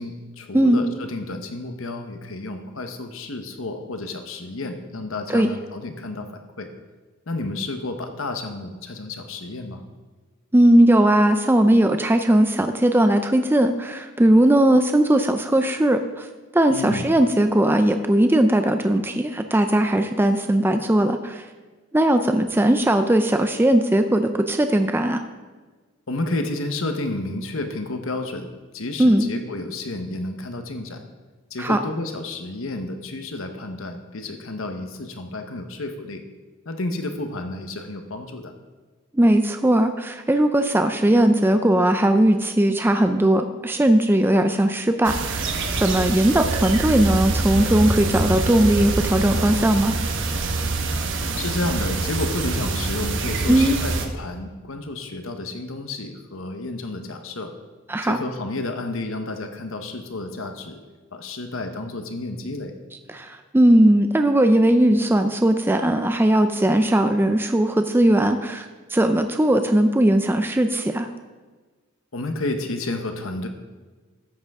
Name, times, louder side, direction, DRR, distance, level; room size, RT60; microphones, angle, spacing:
voice 1, 0.0-6.3 6.6-6.7 7.3-9.8 16.7-17.0 26.1-28.5 28.7-31.0 31.5-36.2 36.6-38.5 51.4-57.5 58.0-60.8 61.1-62.7 72.1-73.5, left 2 dB, 65° left, 6 dB, 1.0 m, -31 dB
voice 2, 10.5-16.3 16.5-21.4 21.9-25.2 29.0-29.3 31.6-31.8 39.1-49.9 53.5-53.8 57.9-58.2 63.1-68.7 68.9-71.1, right 1 dB, 10° right, 7 dB, 0.4 m, -18 dB
sound 1, 45.0-54.1, right 3 dB, 60° right, 1.0 m, -25 dB
13.5 x 7.7 x 3.6 m, 1.4 s
head